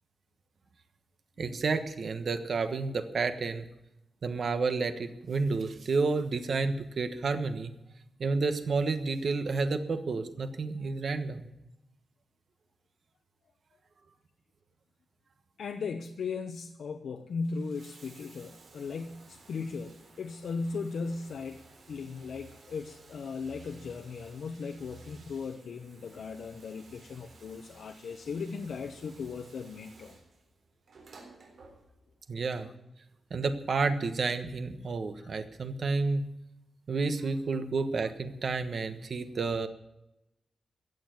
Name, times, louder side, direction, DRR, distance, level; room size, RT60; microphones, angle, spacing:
voice 1, 1.4-3.7 4.2-7.7 8.2-11.5 32.3-32.7 33.3-36.2 36.9-39.7, right 4 dB, 50° right, 9 dB, 1.3 m, -30 dB
voice 2, 15.6-21.6 21.9-30.2 32.6-32.7 35.2-35.3, left 5 dB, 75° left, 5 dB, 0.9 m, -37 dB
Bathtub (filling or washing), 17.2-32.2 33.3-33.4, right 3 dB, 70° right, 3.9 m, -55 dB
15.5 x 7.3 x 9.2 m, 0.89 s
wide cardioid pair, 165°, 0 cm